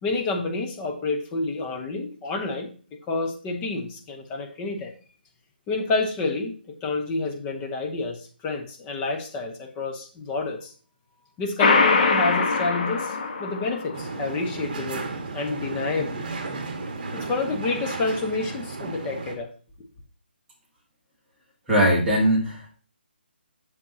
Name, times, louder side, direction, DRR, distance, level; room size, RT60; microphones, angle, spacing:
voice 1, 0.0-2.7 3.1-4.9 5.7-10.7 11.4-15.1 15.3-16.3 17.1-19.5, left 3 dB, 15° left, 0.8 m, -29 dB
sound 1, 11.6-14.0, left 4 dB, 45° left, 1.3 m, -22 dB
sound 2, 13.9-19.4, right 3 dB, 45° right, 1.6 m, -34 dB
voice 2, 21.7-22.7, equal, 5° right, 1.9 m, -20 dB
7.3 x 6.9 x 2.8 m
hypercardioid pair, 165°, 6 cm